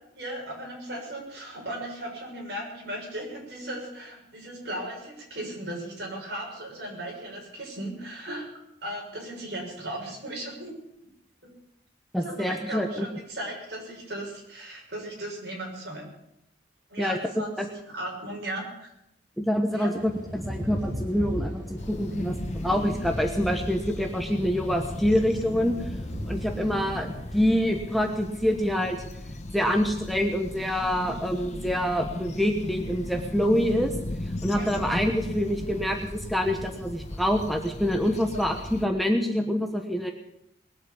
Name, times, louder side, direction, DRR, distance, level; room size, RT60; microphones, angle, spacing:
voice 1, 0.1-8.5 8.8-10.7 12.2-16.1 16.9-17.6 17.9-18.9 19.7-19.9 26.3-26.4 34.5-34.7, right 1 dB, 60° right, -2 dB, 6.5 m, -36 dB
voice 2, 12.1-13.1 17.0-17.7 19.4-19.9 20.3-22.4 22.6-25.7 26.3-29.0 29.5-33.9 34.4-40.1, equal, ahead, 4 dB, 1.1 m, -26 dB
Thunder / Rain, 20.0-27.4, equal, 20° right, 6.6 m, -37 dB
sound 1, 21.8-38.9, left 1 dB, 40° left, 1.1 m, -37 dB
20.5 x 8.1 x 8.4 m, 0.81 s
head